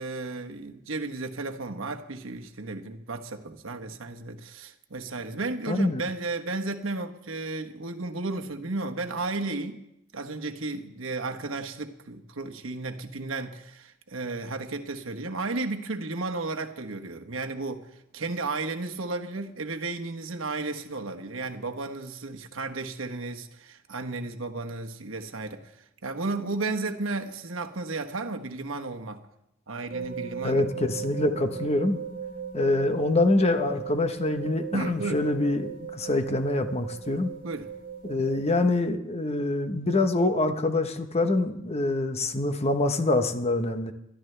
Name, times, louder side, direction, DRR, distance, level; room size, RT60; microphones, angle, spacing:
voice 1, 0.0-9.8 10.1-17.9 18.1-25.6 26.0-29.2 29.7-30.6 34.7-35.3 37.4-37.7, right 3 dB, 80° right, 1.2 m, -33 dB
voice 2, 5.7-6.0 30.4-32.0 32.5-37.3 38.1-43.9, left 2 dB, 30° left, 1.0 m, -25 dB
sound 1, 29.9-38.6, right 7 dB, 50° right, 1.9 m, -38 dB
21.5 x 12.5 x 3.3 m
head